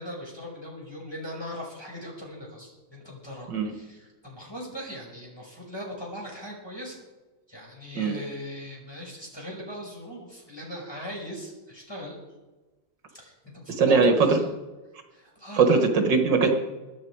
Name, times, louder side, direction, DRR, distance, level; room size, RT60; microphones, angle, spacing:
voice 1, 0.0-7.0 7.5-12.2 13.1-14.5 15.1-15.8, equal, 10° left, -2 dB, 5.5 m, -40 dB
voice 2, 13.8-14.4 15.5-16.5, right 4 dB, 70° right, 4 dB, 2.2 m, -20 dB
24.0 x 10.5 x 4.8 m, 1.2 s
omnidirectional pair, 2.0 m